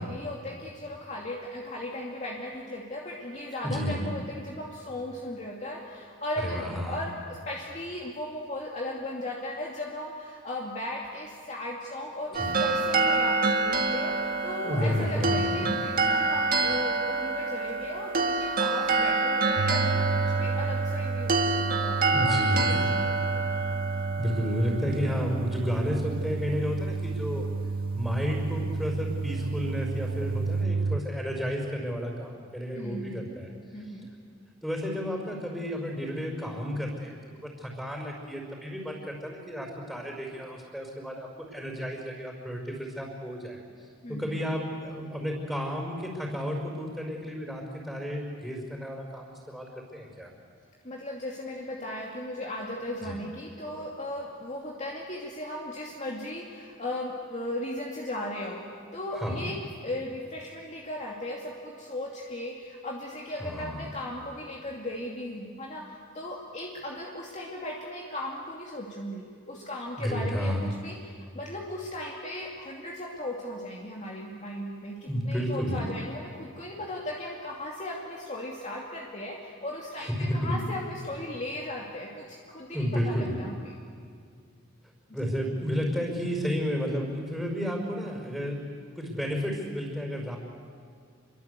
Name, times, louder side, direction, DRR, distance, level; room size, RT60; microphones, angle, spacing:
voice 1, 0.0-23.4 32.7-33.4 33.7-34.1 44.0-44.4 50.8-58.7 58.9-59.6 59.8-83.8 85.1-85.2, left 1 dB, 35° left, -2 dB, 2.5 m, -37 dB
voice 2, 3.6-4.1 6.4-7.0 12.4-12.5 14.6-15.7 22.1-22.8 24.2-27.5 27.9-33.5 34.6-43.6 44.1-50.3 53.0-53.2 59.2-59.5 63.4-63.9 70.0-70.7 75.1-75.8 80.0-80.6 82.7-83.4 85.1-88.6 89.0-90.4, equal, ahead, -1 dB, 5.4 m, -31 dB
sound 1, 12.3-25.6, right 3 dB, 45° right, 1.9 m, -27 dB
sound 2, 19.6-31.0, right 4 dB, 90° right, 0.7 m, -31 dB
28.5 x 23.5 x 8.3 m, 2.1 s
head